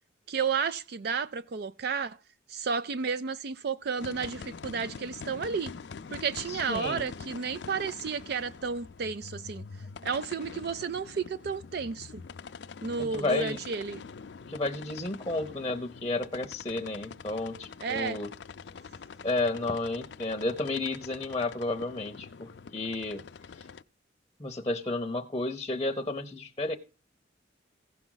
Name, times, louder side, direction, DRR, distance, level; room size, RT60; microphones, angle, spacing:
voice 1, 0.3-2.2 2.5-5.7 6.1-9.6 10.0-12.2 12.8-14.0 17.8-18.2, right 5 dB, 55° right, 0.4 m, -32 dB
sound 1, 4.0-23.8, left 5 dB, 65° left, 0.4 m, -45 dB
voice 2, 6.5-7.1 13.0-13.6 14.5-18.3 19.2-23.2 23.5-23.7 24.4-26.8, left 2 dB, 20° left, 0.7 m, -32 dB
15.5 x 6.0 x 3.9 m
head